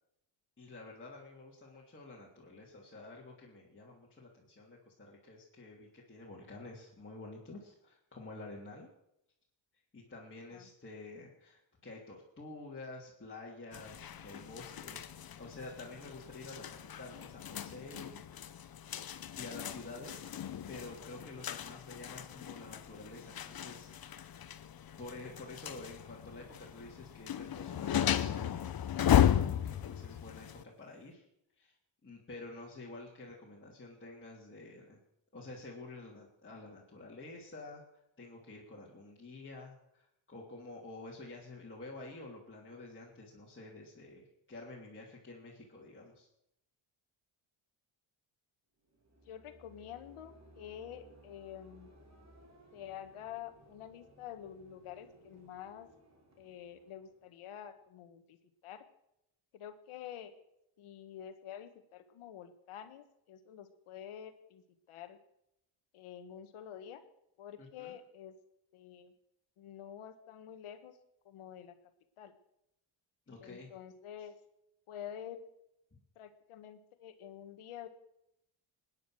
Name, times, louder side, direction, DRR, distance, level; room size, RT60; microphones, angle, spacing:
voice 1, 0.6-8.9 9.9-18.5 19.3-20.3 20.7-24.4 25.0-31.3 31.5-31.7 32.0-35.0 35.3-46.3 67.6-67.9 73.3-73.7 74.2-74.3, left 2 dB, 25° left, -5 dB, 3.2 m, -49 dB
sound 1, 13.7-30.6, left 10 dB, 45° left, 1.0 m, -35 dB
sound 2, 48.8-57.9, right 1 dB, 35° right, 3.6 m, -61 dB
voice 2, 49.3-51.9 52.7-55.9 56.4-58.4 58.6-58.8 59.5-60.3 60.8-65.2 65.9-67.0 67.4-68.3 68.7-69.1 69.6-71.0 71.2-71.7 72.2-72.3 73.4-74.4 74.9-75.4 76.1-77.9, left 10 dB, 80° left, 9 dB, 1.7 m, -48 dB
20.5 x 9.8 x 6.4 m, 0.81 s
cardioid pair, 90°, 50 cm